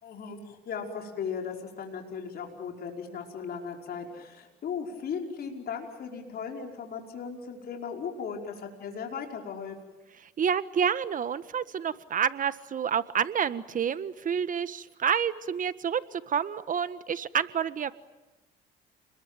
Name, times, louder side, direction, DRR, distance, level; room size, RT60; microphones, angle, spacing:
voice 1, 0.0-10.0, left 6 dB, 55° left, 2 dB, 5.4 m, -37 dB
voice 2, 10.4-17.9, right 7 dB, 45° right, 13 dB, 1.5 m, -29 dB
30.0 x 21.5 x 9.2 m, 1.1 s
supercardioid pair, 80°, 19 cm